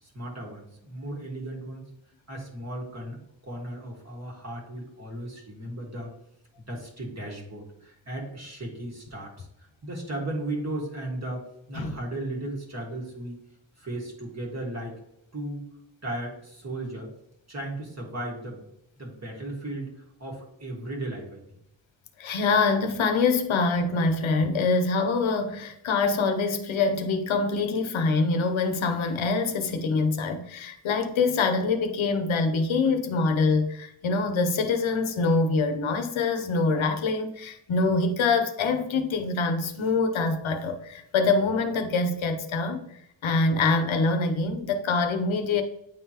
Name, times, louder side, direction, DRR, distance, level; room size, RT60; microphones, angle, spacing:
voice 1, 0.0-1.8 2.3-3.2 3.4-6.1 6.7-9.5 9.8-13.4 13.8-15.0 15.3-15.6 16.0-17.1 17.5-18.7 19.0-21.4, right 1 dB, 35° right, -1 dB, 1.6 m, -36 dB
voice 2, 22.2-42.9 43.2-45.6, left 3 dB, 80° left, 7 dB, 0.8 m, -25 dB
8.8 x 3.7 x 2.9 m, 0.78 s
wide cardioid pair, 130°, 48 cm